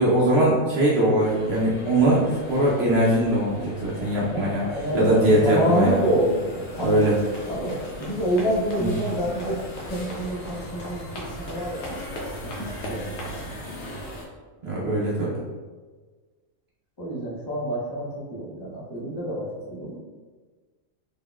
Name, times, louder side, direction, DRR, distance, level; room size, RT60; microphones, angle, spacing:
voice 1, 0.0-4.6 4.9-6.0 6.8-7.2 8.8-9.0 14.6-15.3, right 1 dB, 55° right, -5 dB, 0.9 m, -21 dB
sound 1, 1.2-14.2, equal, 75° left, 1.3 m, -40 dB
voice 2, 4.2-7.0 7.5-9.6 9.9-12.1 12.4-12.5 12.9-13.7 17.0-20.0, right 1 dB, 30° left, -5 dB, 0.4 m, -27 dB
sound 2, 6.7-13.4, equal, 60° left, 1.0 m, -39 dB
3.9 x 3.6 x 2.3 m, 1.4 s
omnidirectional pair, 1.4 m